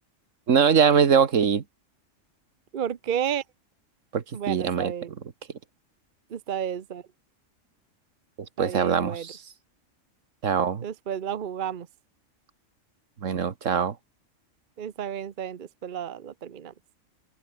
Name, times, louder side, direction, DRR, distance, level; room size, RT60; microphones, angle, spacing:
voice 1, 0.5-1.6 4.1-4.9 8.6-9.4 10.4-10.9 13.2-14.0, right 6 dB, 85° right, 1.7 m, -22 dB
voice 2, 2.7-3.4 4.3-5.1 6.3-7.0 8.6-9.2 10.8-11.9 14.8-16.7, right 9 dB, 45° right, 0.9 m, -32 dB
omnidirectional pair, 1.3 m